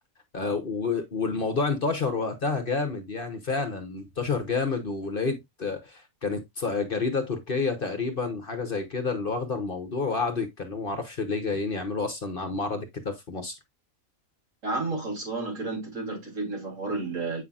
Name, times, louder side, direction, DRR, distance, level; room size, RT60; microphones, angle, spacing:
voice 1, 0.3-13.5, left 4 dB, 45° left, 1.1 m, -29 dB
voice 2, 14.6-17.4, right 3 dB, 65° right, 3.7 m, -31 dB
8.3 x 5.7 x 2.4 m
omnidirectional pair, 1.4 m